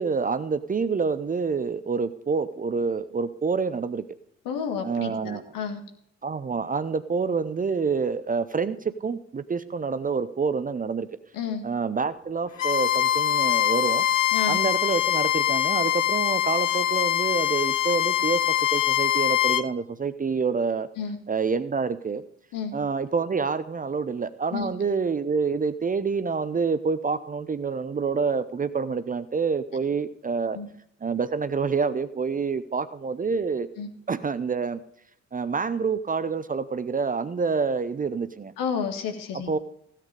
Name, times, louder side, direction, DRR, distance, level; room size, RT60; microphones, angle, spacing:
voice 1, 0.0-4.0 4.8-5.4 6.2-11.1 11.6-14.1 14.5-20.9 21.3-22.2 22.7-30.6 31.0-33.7 34.1-34.8 35.3-38.5 39.3-39.6, right 5 dB, 20° right, 13 dB, 0.7 m, -27 dB
voice 2, 4.5-5.8 11.3-11.6 14.3-14.6 21.0-21.2 22.5-22.7 24.5-24.7 30.5-30.7 33.8-33.9 38.6-39.5, left 6 dB, 60° left, 6 dB, 2.0 m, -30 dB
Bowed string instrument, 12.6-19.6, left 12 dB, 85° left, 0.5 m, -23 dB
16.5 x 8.5 x 5.0 m, 0.70 s
figure-of-eight pair, 45°, 38 cm